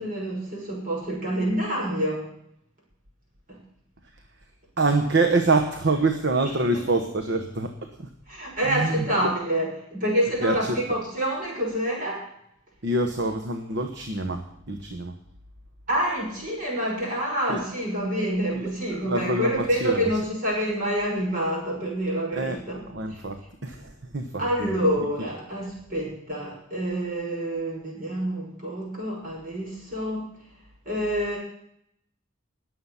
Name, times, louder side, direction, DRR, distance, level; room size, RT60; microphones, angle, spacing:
voice 1, 0.0-2.3 8.3-12.3 15.9-22.8 23.1-23.2 24.4-30.3 30.8-31.4, right 1 dB, 40° right, -2 dB, 6.3 m, -27 dB
voice 2, 4.8-7.7 8.0-8.1 8.7-9.0 10.4-10.6 12.8-14.4 14.7-15.1 17.5-17.6 18.6-18.7 19.1-20.0 22.3-22.6 22.9-24.7, right 2 dB, 55° right, 6 dB, 1.1 m, -25 dB
19.5 x 7.8 x 5.8 m, 0.73 s
head